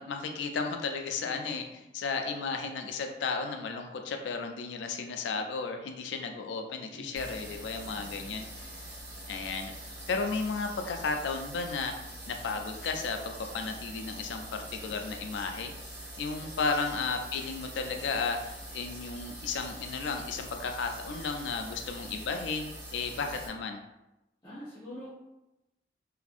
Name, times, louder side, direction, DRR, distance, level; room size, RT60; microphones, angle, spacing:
voice 1, 0.0-1.6 1.9-8.7 9.3-11.9 12.3-15.7 16.2-23.8, left 4 dB, 90° left, 5 dB, 0.3 m, -34 dB
voice 2, 6.9-8.2 16.4-16.5 24.4-25.1, equal, 25° left, -10 dB, 0.7 m, -46 dB
sound 1, 7.1-23.5, right 1 dB, 60° right, 1.3 m, -44 dB
2.6 x 2.5 x 2.4 m, 0.94 s
head